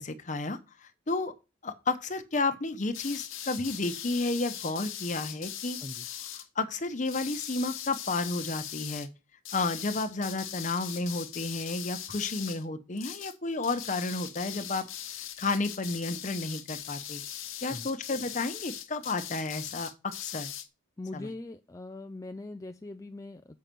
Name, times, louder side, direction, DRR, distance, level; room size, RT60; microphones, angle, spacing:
voice 1, 0.0-1.3 1.6-5.8 6.6-9.1 9.5-14.8 15.4-17.2 17.6-20.5 21.1-21.3, left 3 dB, 35° left, 0.9 m, -32 dB
sound 1, 2.9-6.5 7.0-9.1 9.4-12.7 13.0-13.4 13.6-20.7, left 11 dB, 80° left, 1.1 m, -40 dB
voice 2, 21.0-23.6, left 2 dB, 15° left, 0.3 m, -41 dB
7.5 x 5.6 x 5.2 m
head